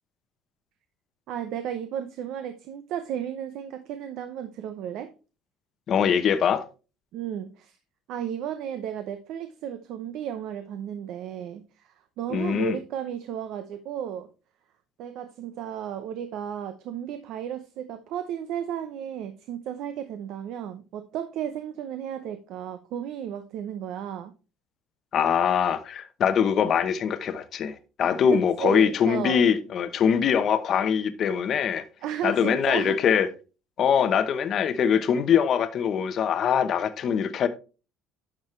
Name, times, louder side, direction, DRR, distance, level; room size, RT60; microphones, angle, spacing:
voice 1, 1.3-5.1 7.1-7.8 8.1-14.3 15.0-24.3 28.3-29.4 32.0-33.0, right 9 dB, 60° right, 0.8 m, -34 dB
voice 2, 5.9-6.7 12.3-12.8 25.1-31.8 32.2-33.3 33.8-37.5, left 7 dB, 40° left, 0.8 m, -23 dB
10.5 x 6.2 x 3.2 m
cardioid pair, 155°, 0 cm